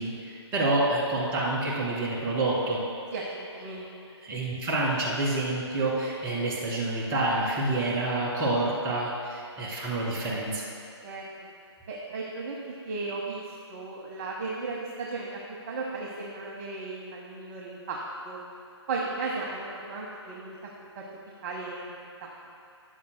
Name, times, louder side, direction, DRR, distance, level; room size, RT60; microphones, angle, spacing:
voice 1, 0.0-2.8 4.2-10.6, right 2 dB, 20° right, -6 dB, 1.9 m, -28 dB
voice 2, 3.1-4.0 11.0-11.5 11.9-12.6 12.9-15.4 15.7-18.4 18.9-20.6 20.9-21.9 22.2-22.3, right 3 dB, 35° right, -2 dB, 0.9 m, -35 dB
13.0 x 9.5 x 2.2 m, 2.6 s
hypercardioid pair, 145°, 15 cm